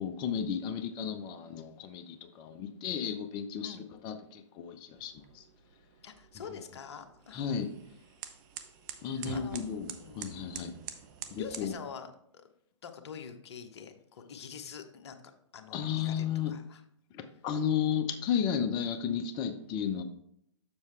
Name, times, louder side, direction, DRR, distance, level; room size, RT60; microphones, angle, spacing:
voice 1, 0.0-5.4 7.3-7.7 9.0-10.8 11.3-11.7 15.7-16.5 17.1-20.0, left 8 dB, 25° left, 8 dB, 0.7 m, -33 dB
sound 1, 5.0-11.7, right 8 dB, 40° right, 0.7 m, -46 dB
voice 2, 6.0-7.5 9.1-9.6 10.0-10.4 11.3-12.5 12.8-16.8, left 7 dB, 60° left, 6 dB, 1.0 m, -46 dB
7.1 x 6.5 x 3.3 m, 0.72 s
hypercardioid pair, 130°, 16 cm